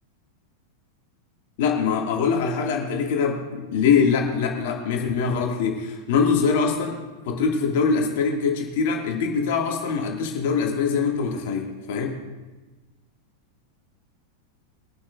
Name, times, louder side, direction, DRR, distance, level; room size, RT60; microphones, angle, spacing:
voice 1, 1.6-12.2, left 5 dB, 50° left, 0 dB, 2.2 m, -23 dB
23.0 x 11.5 x 2.6 m, 1.2 s
figure-of-eight pair, 90°, 0 cm